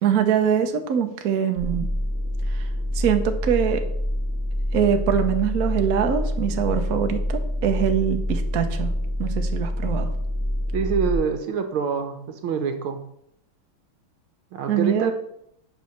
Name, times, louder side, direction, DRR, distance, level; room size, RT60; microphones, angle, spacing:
voice 1, 0.0-1.9 2.5-2.7 2.9-3.8 4.7-8.9 9.2-10.1 14.7-15.1, right 8 dB, 55° right, 6 dB, 1.2 m, -23 dB
sound 1, 1.6-11.1, left 1 dB, 15° left, 3.4 m, -26 dB
voice 2, 10.7-13.0 14.5-15.1, right 6 dB, 75° right, 7 dB, 1.8 m, -26 dB
8.4 x 5.5 x 6.5 m, 0.76 s
omnidirectional pair, 2.3 m